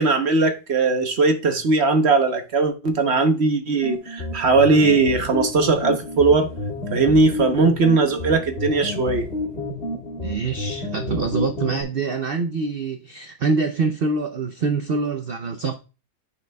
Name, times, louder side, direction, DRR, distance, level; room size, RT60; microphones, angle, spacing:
voice 1, 0.0-6.5 6.9-9.3, right 3 dB, 50° right, 1.0 m, -19 dB
sound 1, 3.8-11.8, left 2 dB, 40° left, 1.7 m, -30 dB
voice 2, 10.2-15.7, right 4 dB, 70° right, 0.5 m, -25 dB
9.4 x 5.7 x 2.2 m
omnidirectional pair, 1.7 m